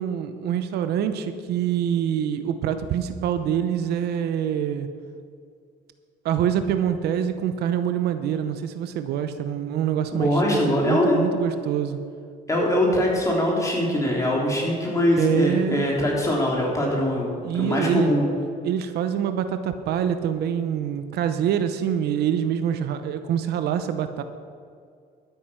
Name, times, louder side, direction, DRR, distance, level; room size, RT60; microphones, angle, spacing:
voice 1, 0.0-4.9 6.2-10.4 10.7-12.0 15.2-15.9 17.4-18.1 18.6-24.2, right 9 dB, 75° right, 9 dB, 0.8 m, -25 dB
voice 2, 10.2-11.3 12.5-18.3, left 1 dB, 20° left, -3 dB, 3.7 m, -22 dB
12.0 x 9.4 x 5.8 m, 2.3 s
cardioid pair, 110°, 17 cm